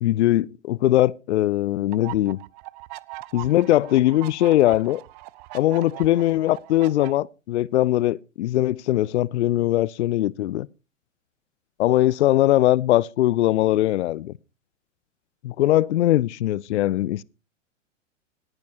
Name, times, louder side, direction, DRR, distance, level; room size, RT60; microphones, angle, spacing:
voice 1, 0.0-2.4 3.3-5.0 5.5-10.7 11.8-14.3 15.4-17.2, left 14 dB, 60° left, 0.5 m, -21 dB
sound 1, 1.9-7.1, right 20 dB, 35° right, 0.5 m, -40 dB
18.5 x 10.5 x 2.8 m
figure-of-eight pair, 105°, 39 cm